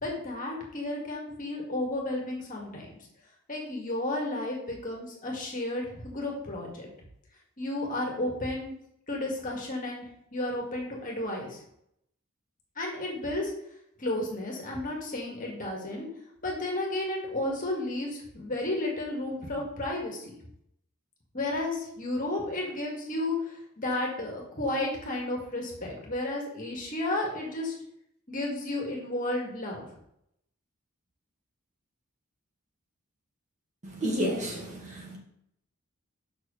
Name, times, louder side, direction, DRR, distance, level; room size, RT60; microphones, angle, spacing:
voice 1, 0.0-2.9 3.5-6.9 7.6-8.7 9.1-11.6 12.8-13.5 14.0-16.1 16.4-20.4 21.3-27.7 28.3-29.8, left 1 dB, 40° left, -1 dB, 2.1 m, -32 dB
voice 2, 33.8-35.2, equal, 35° right, -2 dB, 2.0 m, -31 dB
6.1 x 4.9 x 6.5 m, 0.74 s
head